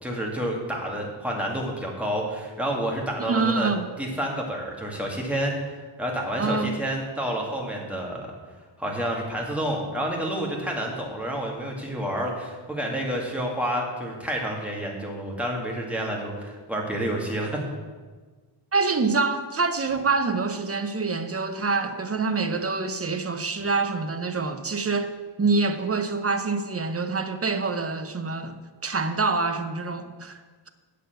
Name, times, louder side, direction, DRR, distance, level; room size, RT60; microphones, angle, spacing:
voice 1, 0.0-3.7 4.0-8.3 8.8-17.6, right 1 dB, 5° right, -2 dB, 2.1 m, -29 dB
voice 2, 3.2-3.9 6.4-6.7 18.7-28.6 28.8-30.4, right 4 dB, 30° right, 7 dB, 0.8 m, -26 dB
8.2 x 6.8 x 7.8 m, 1.4 s
wide cardioid pair, 130°, 47 cm